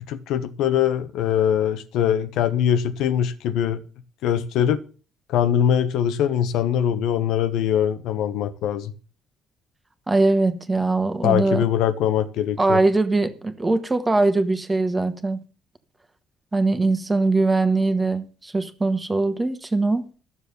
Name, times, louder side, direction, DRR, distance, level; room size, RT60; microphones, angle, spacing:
voice 1, 0.1-3.8 4.2-4.8 5.3-8.9 11.2-12.8, left 9 dB, 80° left, 1.1 m, -22 dB
voice 2, 10.1-11.6 12.6-15.4 16.5-20.0, right 2 dB, 15° right, 1.4 m, -21 dB
13.5 x 7.1 x 6.9 m
cardioid pair, 140°, 0 cm